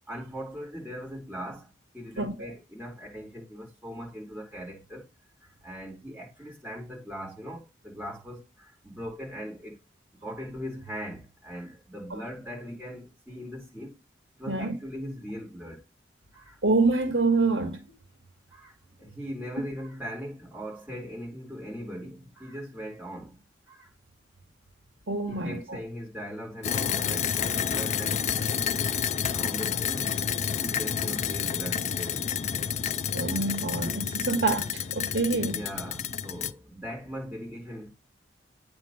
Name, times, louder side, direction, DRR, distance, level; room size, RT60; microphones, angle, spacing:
voice 1, 0.1-5.0 5.6-9.8 10.1-14.0 14.4-15.8 16.3-16.6 18.5-23.9 25.3-29.0 29.3-30.2 30.6-32.3 35.3-37.9, equal, 10° right, 4.5 m, -40 dB
voice 2, 16.6-17.8 25.1-25.6 33.1-35.6, right 3 dB, 80° right, 1.8 m, -26 dB
sound 1, 26.6-36.5, left 8 dB, 35° left, 0.4 m, -29 dB
8.8 x 3.7 x 6.4 m
head